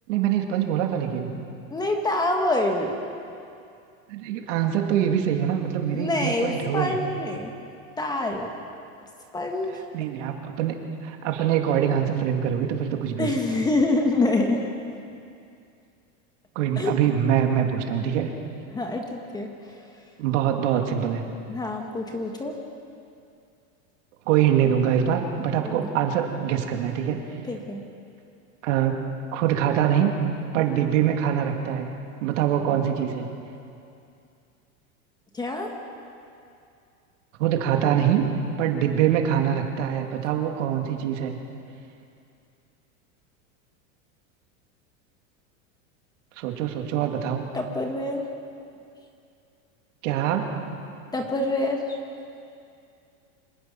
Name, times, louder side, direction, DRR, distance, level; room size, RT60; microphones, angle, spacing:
voice 1, 0.1-1.3 4.1-6.9 9.7-10.7 11.0-13.3 16.5-18.3 20.2-21.2 24.3-27.2 28.6-29.0 29.3-30.1 30.5-31.9 32.2-33.3 37.4-38.2 38.6-41.4 46.4-47.4 50.0-50.5, right 9 dB, 60° right, 3 dB, 2.7 m, -24 dB
voice 2, 1.7-2.9 5.8-7.5 8.0-8.5 9.3-9.7 13.2-14.7 16.8-17.0 18.7-19.5 21.5-22.5 25.6-25.9 27.5-27.8 35.3-35.7 47.5-48.2 51.1-51.8, left 2 dB, 10° left, 2 dB, 1.3 m, -26 dB
26.0 x 19.5 x 6.0 m, 2.5 s
supercardioid pair, 165°, 41 cm